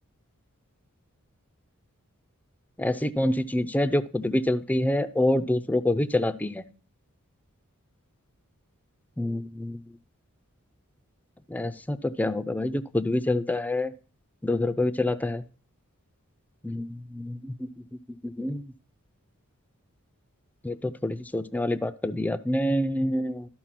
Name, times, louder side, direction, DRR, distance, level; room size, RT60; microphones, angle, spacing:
voice 1, 2.8-6.6 9.2-9.8 11.5-13.9 14.4-15.4 16.6-17.5 18.2-18.6 20.6-23.5, left 1 dB, 5° left, 13 dB, 0.4 m, -26 dB
12.5 x 4.4 x 5.8 m, 0.40 s
head